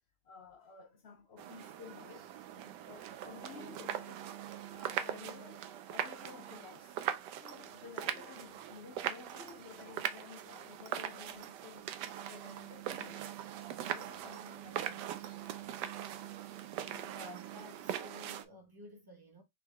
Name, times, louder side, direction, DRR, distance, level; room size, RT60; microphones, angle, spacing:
voice 1, 0.2-4.3 4.7-7.0 7.4-11.9 12.2-13.3 13.8-15.5, left 6 dB, 55° left, 0.7 m, -53 dB
sound 1, 1.4-18.4, right 10 dB, 75° right, 1.2 m, -41 dB
voice 2, 16.8-19.4, left 1 dB, 15° right, 0.9 m, -52 dB
4.1 x 3.2 x 3.4 m
omnidirectional pair, 1.9 m